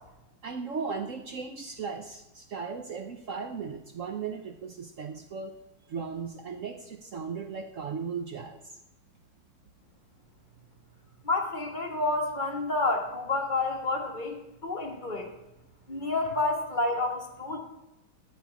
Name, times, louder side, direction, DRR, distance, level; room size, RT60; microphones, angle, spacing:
voice 1, 0.4-5.6 5.9-8.8, right 5 dB, 75° right, 6 dB, 0.7 m, -37 dB
voice 2, 11.2-15.3 15.9-17.6, left 2 dB, 25° left, 2 dB, 1.3 m, -29 dB
13.0 x 4.5 x 8.2 m, 0.93 s
omnidirectional pair, 2.2 m